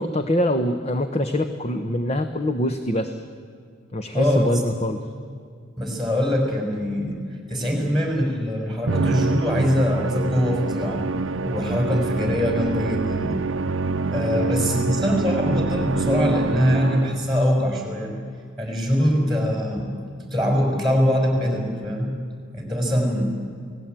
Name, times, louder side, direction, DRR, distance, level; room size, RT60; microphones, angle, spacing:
voice 1, 0.0-3.2 3.9-5.0 14.3-14.7, left 1 dB, 30° left, 8 dB, 1.0 m, -24 dB
voice 2, 4.1-4.6 5.8-7.2 7.5-11.0 11.4-13.4 14.1-18.1 18.6-19.9 20.2-22.1 22.5-23.3, equal, ahead, 2 dB, 4.9 m, -23 dB
Musical instrument, 8.9-17.4, right 3 dB, 70° right, 0.7 m, -26 dB
28.5 x 18.5 x 9.0 m, 2.3 s
head